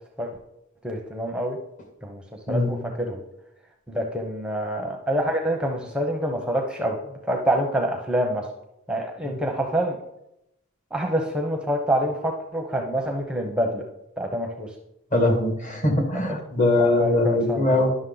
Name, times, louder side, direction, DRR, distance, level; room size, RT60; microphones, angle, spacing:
voice 1, 0.8-1.6 2.0-2.2 2.5-3.2 3.9-7.0 7.3-8.5 8.9-10.0 10.9-13.8 14.2-14.7 16.8-17.9, right 1 dB, 5° right, 1 dB, 0.7 m, -26 dB
voice 2, 15.1-17.9, left 2 dB, 35° left, 3 dB, 1.6 m, -21 dB
11.0 x 6.2 x 3.9 m, 0.84 s
head